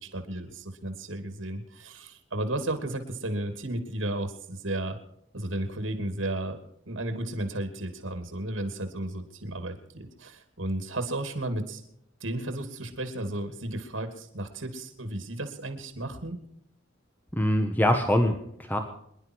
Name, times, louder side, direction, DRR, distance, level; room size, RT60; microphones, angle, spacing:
voice 1, 0.0-5.0 5.3-6.6 6.9-11.8 12.2-16.4, right 1 dB, 85° right, 7 dB, 2.8 m, -33 dB
voice 2, 17.3-18.8, left 1 dB, 10° left, 5 dB, 1.2 m, -24 dB
25.5 x 11.0 x 4.7 m, 0.73 s
head